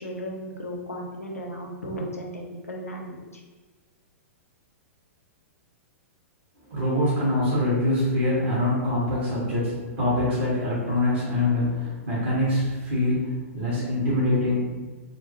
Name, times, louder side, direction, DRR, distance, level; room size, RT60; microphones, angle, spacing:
voice 1, 0.0-3.4, equal, 80° left, 0 dB, 0.5 m, -35 dB
voice 2, 6.7-14.6, left 1 dB, 50° right, -8 dB, 1.3 m, -24 dB
3.9 x 2.0 x 2.7 m, 1.3 s
figure-of-eight pair, 105°, 8 cm